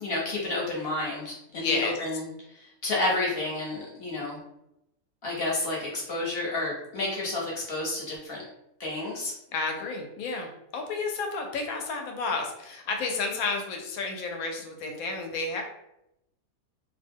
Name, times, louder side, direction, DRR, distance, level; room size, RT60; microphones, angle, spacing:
voice 1, 0.0-2.3 2.6-4.4 5.2-8.4 8.8-9.3, left 2 dB, 50° left, -4 dB, 0.9 m, -30 dB
voice 2, 1.6-2.0 9.5-15.6, left 3 dB, 75° left, 3 dB, 1.0 m, -31 dB
2.5 x 2.1 x 3.4 m, 0.84 s
omnidirectional pair, 1.6 m